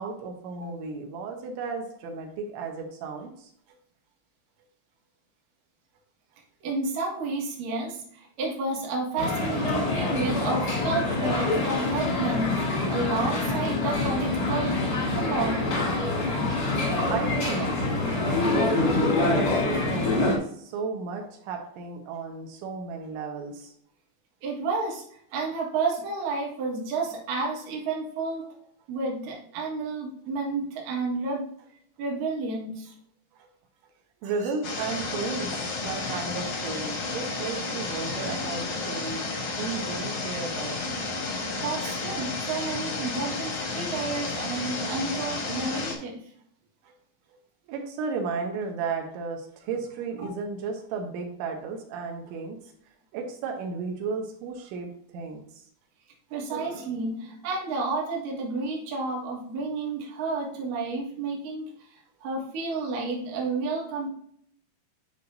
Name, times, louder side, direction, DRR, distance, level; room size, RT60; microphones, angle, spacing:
voice 1, 0.0-3.5 9.7-10.0 17.1-23.7 34.2-39.3 39.6-40.8 47.7-52.6 53.1-55.4, right 4 dB, 85° right, 2 dB, 3.4 m, -34 dB
voice 2, 6.6-15.7 16.0-16.1 24.4-25.0 25.3-28.5 28.9-31.5 32.0-32.9 34.2-34.5 41.6-46.3 50.2-50.3 56.3-64.1, right 3 dB, 60° right, -2 dB, 2.7 m, -31 dB
sound 1, 9.2-20.4, left 2 dB, 60° left, 1.0 m, -26 dB
sound 2, 34.6-45.9, left 3 dB, 80° left, 1.3 m, -32 dB
10.0 x 4.8 x 2.6 m, 0.66 s
omnidirectional pair, 5.3 m